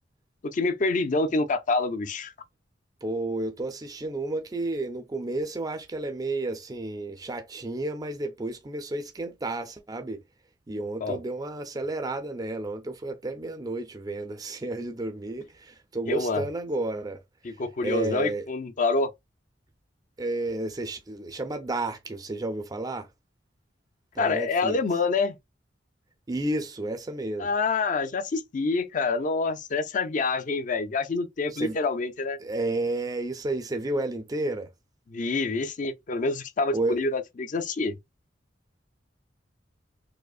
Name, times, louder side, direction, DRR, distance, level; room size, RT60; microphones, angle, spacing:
voice 1, 0.5-2.3 11.0-11.2 16.1-16.4 17.4-19.1 24.2-25.3 27.4-32.4 35.1-37.9, left 3 dB, 45° left, 0.5 m, -27 dB
voice 2, 3.0-10.2 10.7-17.2 17.5-18.5 20.2-23.1 24.1-24.8 26.3-27.5 31.5-31.8 32.4-34.7 36.7-37.0, right 2 dB, 20° right, 0.4 m, -31 dB
4.9 x 2.1 x 2.4 m
head